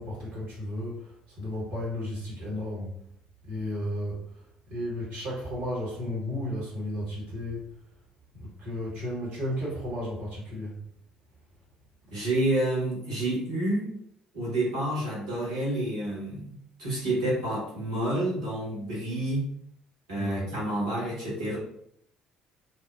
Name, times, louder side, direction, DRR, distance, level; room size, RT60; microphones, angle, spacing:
voice 1, 0.0-3.0 3.4-4.2 4.7-7.7 8.3-10.8 20.2-20.5, left 1 dB, 55° right, -5 dB, 1.0 m, -33 dB
voice 2, 12.1-13.9 14.3-16.5 16.8-19.4 20.1-21.6, right 1 dB, 75° right, -7 dB, 1.3 m, -29 dB
2.8 x 2.0 x 2.3 m, 0.71 s
figure-of-eight pair, 50°, 3 cm